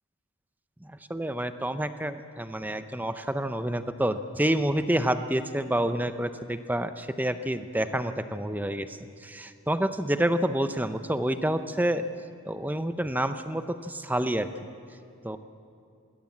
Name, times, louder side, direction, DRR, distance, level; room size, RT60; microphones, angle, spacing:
voice 1, 0.8-12.0 12.4-14.7 15.2-15.4, right 1 dB, 10° right, 10 dB, 0.7 m, -28 dB
21.0 x 17.0 x 8.6 m, 2.4 s
head